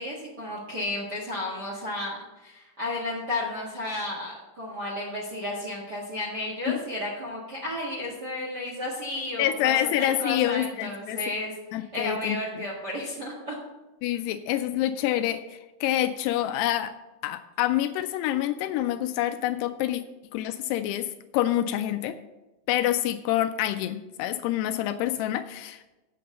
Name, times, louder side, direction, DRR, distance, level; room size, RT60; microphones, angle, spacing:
voice 1, 0.0-13.6, left 1 dB, 55° right, -4 dB, 1.1 m, -33 dB
voice 2, 9.4-11.2 11.7-12.4 14.0-16.9 17.2-20.0 20.3-21.1 21.3-22.2 22.7-25.8, left 12 dB, 85° left, 9 dB, 2.6 m, -27 dB
8.5 x 6.8 x 6.5 m, 1.0 s
omnidirectional pair, 4.7 m